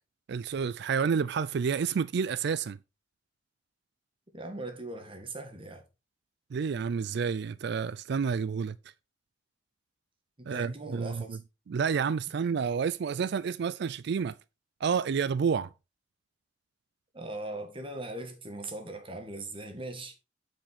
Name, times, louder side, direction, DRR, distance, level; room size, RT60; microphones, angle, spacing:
voice 1, 0.3-2.8 6.5-8.8 10.5-11.4 11.7-14.3 14.8-15.7, right 6 dB, 65° right, 0.4 m, -29 dB
voice 2, 4.3-5.8 10.4-11.4 17.1-20.2, right 2 dB, 30° right, 1.9 m, -40 dB
8.8 x 5.3 x 4.1 m
head